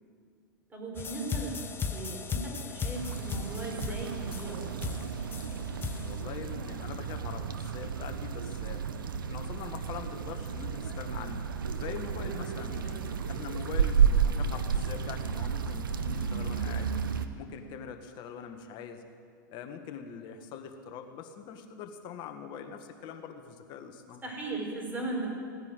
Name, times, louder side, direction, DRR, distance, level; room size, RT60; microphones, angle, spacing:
voice 1, 0.7-4.8 12.1-12.5 12.8-13.0 24.2-25.3, right 2 dB, 15° right, -2 dB, 5.4 m, -38 dB
sound 1, 1.0-6.2, left 5 dB, 20° left, 1.2 m, -37 dB
sound 2, 2.9-17.3, right 6 dB, 85° right, 1.0 m, -32 dB
voice 2, 5.9-8.9 9.2-11.4 11.8-13.0 13.3-16.9 17.3-19.0 19.5-24.2, left 7 dB, 45° left, 6 dB, 1.7 m, -43 dB
17.0 x 10.5 x 8.1 m, 2.2 s
hypercardioid pair, 105°, 11 cm